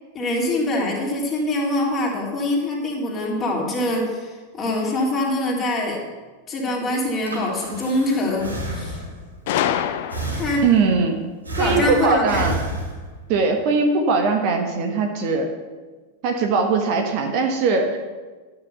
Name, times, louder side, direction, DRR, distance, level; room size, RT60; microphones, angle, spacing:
voice 1, 0.1-6.0 6.5-9.0 10.3-10.7 11.6-12.5, left 1 dB, 25° left, -2 dB, 3.2 m, -24 dB
Breathing, 7.0-9.3 10.1-11.0 11.5-13.3, right 1 dB, 80° right, 3.2 m, -30 dB
Gunshot gunfire, 9.5-10.7, left 10 dB, 50° left, 0.7 m, -25 dB
voice 2, 10.6-11.2 11.6-12.5 13.3-15.5 16.2-18.0, right 4 dB, 45° right, 4 dB, 1.4 m, -20 dB
12.0 x 6.3 x 6.9 m, 1.4 s
figure-of-eight pair, 90°, 0 cm